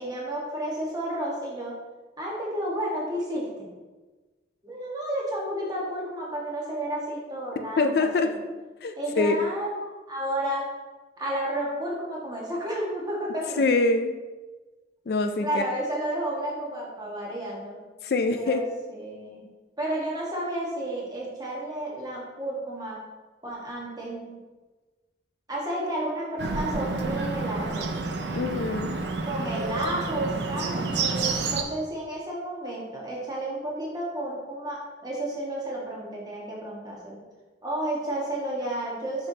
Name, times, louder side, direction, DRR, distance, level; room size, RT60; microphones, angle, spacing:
voice 1, 0.0-1.7 2.2-3.7 4.6-8.4 9.0-10.6 11.2-13.7 15.4-17.8 18.3-18.6 18.9-19.5 19.8-23.0 23.4-24.4 25.5-27.9 29.2-37.2 37.6-39.3, right 1 dB, 20° right, -4 dB, 1.4 m, -32 dB
voice 2, 7.8-8.3 8.8-9.4 13.6-14.2 15.1-15.6 18.0-18.6 28.3-29.0, left 3 dB, 55° left, 7 dB, 0.4 m, -24 dB
Bird, 26.4-31.6, right 3 dB, 70° right, 0.6 m, -29 dB
6.6 x 5.7 x 2.8 m, 1.2 s
head